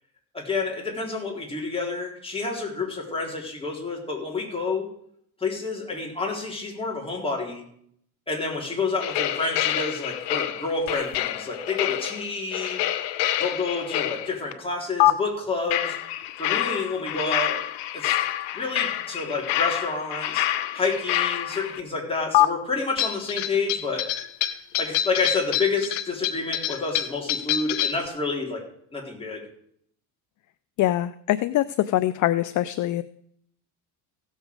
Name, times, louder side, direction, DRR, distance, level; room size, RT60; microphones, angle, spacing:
voice 1, 0.3-4.9 5.4-7.6 8.3-12.8 13.4-16.0 16.4-17.6 17.9-18.1 18.5-20.5 20.7-24.1 24.8-28.6 28.9-29.4, left 3 dB, 15° left, -2 dB, 4.0 m, -29 dB
sound 1, 9.0-14.5 15.0-15.1 15.7-21.8 22.3-22.5 23.0-28.1, left 13 dB, 75° left, 1.0 m, -26 dB
voice 2, 30.8-33.0, left 14 dB, 45° left, 14 dB, 0.5 m, -23 dB
16.0 x 7.4 x 4.8 m, 0.66 s
cardioid pair, 110°, 41 cm